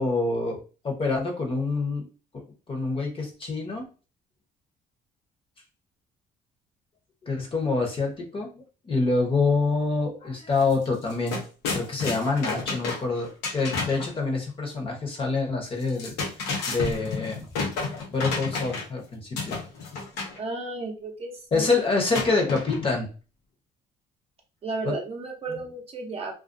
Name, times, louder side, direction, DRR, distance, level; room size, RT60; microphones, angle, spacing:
voice 1, 0.0-2.1 2.3-3.9 7.2-11.4 11.7-16.1 16.7-17.5 18.1-19.6 21.5-23.1 24.8-24.9 25.5-25.6, left 3 dB, 30° left, 1 dB, 0.9 m, -26 dB
sound 1, 10.6-10.7 11.0-14.1 15.8-19.0 19.4-20.4 22.1-23.0, left 4 dB, 85° left, 0.8 m, -31 dB
voice 2, 20.4-21.7 24.6-26.3, right 3 dB, 35° right, 1 dB, 0.6 m, -33 dB
2.4 x 2.3 x 2.5 m, 0.35 s
cardioid pair, 110°, 17 cm